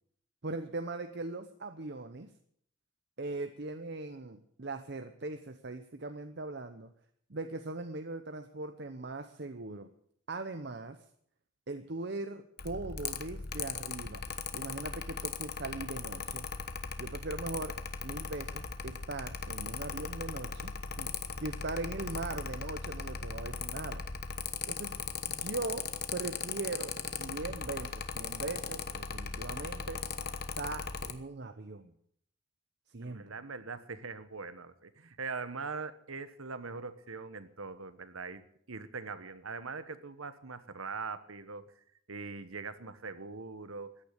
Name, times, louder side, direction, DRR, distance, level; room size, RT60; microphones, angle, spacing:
voice 1, 0.4-2.3 3.2-6.9 7.3-9.9 10.3-11.0 11.7-14.2 14.5-16.5 17.0-17.8 18.0-21.1 21.4-24.0 24.7-25.0 25.3-26.9 27.2-30.0 30.6-31.9 32.9-33.3, right 2 dB, 55° right, 8 dB, 0.9 m, -40 dB
Mechanical fan, 12.6-31.1, left 6 dB, 50° left, 1.1 m, -38 dB
voice 2, 33.0-41.7 42.1-43.9, right 4 dB, 85° right, 12 dB, 1.2 m, -42 dB
14.5 x 10.5 x 8.2 m, 0.65 s
head